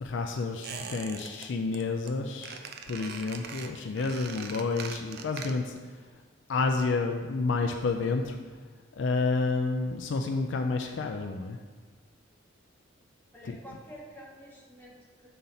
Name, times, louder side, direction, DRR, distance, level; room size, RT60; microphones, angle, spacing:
voice 1, 0.0-2.6 2.9-5.7 6.5-8.4 9.0-11.6 13.4-13.6, left 3 dB, 65° left, 4 dB, 0.4 m, -29 dB
Squeak, 0.6-1.5 1.7-2.1 2.4-5.8 6.1-6.2, right 6 dB, 50° right, 0.4 m, -42 dB
voice 2, 13.3-15.3, equal, 10° left, -7 dB, 1.4 m, -48 dB
6.6 x 4.0 x 4.1 m, 1.4 s
head